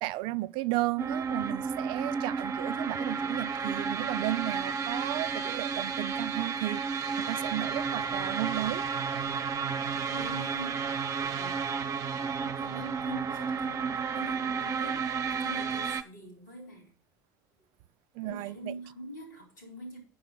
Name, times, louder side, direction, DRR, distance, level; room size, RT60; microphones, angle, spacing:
voice 1, 0.0-6.8 7.2-8.8 18.1-18.7, right 17 dB, 55° right, 0.4 m, -34 dB
sound 1, 1.0-16.0, right 6 dB, 35° right, 0.9 m, -32 dB
voice 2, 10.1-10.8 11.2-11.8 12.2-16.9 18.2-20.0, right 1 dB, 85° left, 4.0 m, -44 dB
7.6 x 6.0 x 5.7 m
figure-of-eight pair, 70°, 10 cm